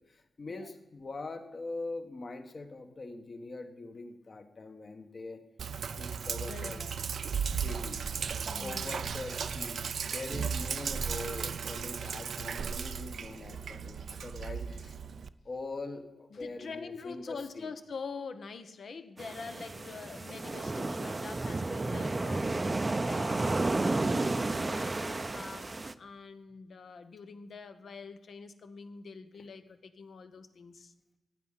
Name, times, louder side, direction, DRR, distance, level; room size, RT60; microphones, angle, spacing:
voice 1, 0.1-5.4 6.0-6.8 7.3-8.0 8.5-15.0 15.4-17.7, left 3 dB, 50° left, 7 dB, 1.5 m, -42 dB
Sink (filling or washing), 5.6-15.3, right 6 dB, 75° right, 0.5 m, -36 dB
voice 2, 6.3-7.0 7.6-8.1 8.4-9.0 16.3-25.7 26.0-30.9, left 5 dB, 70° left, 9 dB, 1.1 m, -45 dB
sound 1, 19.2-25.9, right 2 dB, 30° right, 0.6 m, -32 dB
15.5 x 9.7 x 5.7 m, 1.1 s
wide cardioid pair, 95°, 0 cm